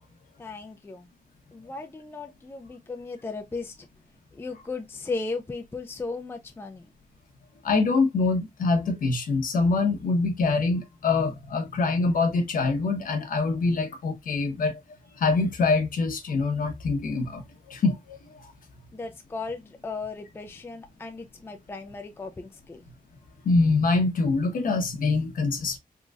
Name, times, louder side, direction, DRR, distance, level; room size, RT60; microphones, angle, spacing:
voice 1, 0.4-1.1 1.5-3.9 4.3-6.9 18.9-22.8, left 3 dB, 15° left, 0.4 m, -36 dB
voice 2, 7.6-14.8 15.2-18.5 23.4-25.8, left 3 dB, 65° left, 1.0 m, -24 dB
3.8 x 2.9 x 2.4 m
wide cardioid pair, 155°, 15 cm